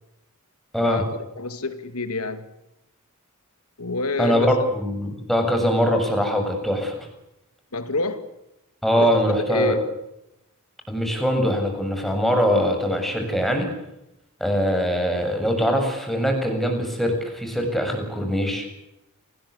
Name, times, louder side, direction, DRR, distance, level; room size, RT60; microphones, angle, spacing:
voice 1, 0.7-1.0 4.2-7.0 8.8-9.8 10.9-13.7 14.4-18.7, equal, ahead, 7.2 m, -22 dB
voice 2, 1.4-2.4 3.8-4.5 7.7-8.3 9.0-9.2 9.5-9.8, left 3 dB, 85° left, 2.4 m, -27 dB
28.0 x 20.0 x 8.5 m
head